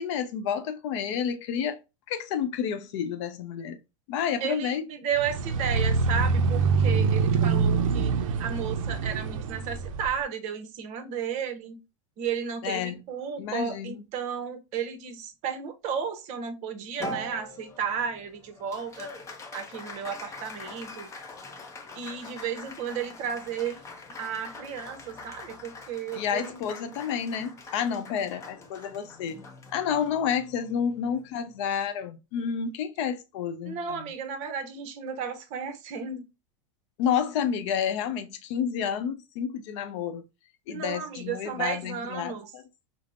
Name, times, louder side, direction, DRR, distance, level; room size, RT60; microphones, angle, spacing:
voice 1, 0.0-1.8 2.1-3.8 4.1-4.8 12.6-13.0 13.4-14.0 26.1-29.4 29.7-34.1 37.0-40.2 40.7-42.6, left 8 dB, 60° left, 0.6 m, -30 dB
voice 2, 4.4-11.8 12.2-19.1 19.5-21.1 21.9-23.8 24.2-26.6 33.6-36.3 40.7-42.5, right 7 dB, 45° right, 0.7 m, -33 dB
sound 1, 5.2-10.1, right 5 dB, 85° right, 0.4 m, -25 dB
Applause, 17.0-31.6, left 1 dB, 15° left, 0.5 m, -43 dB
3.4 x 2.0 x 2.4 m
supercardioid pair, 125°, 17 cm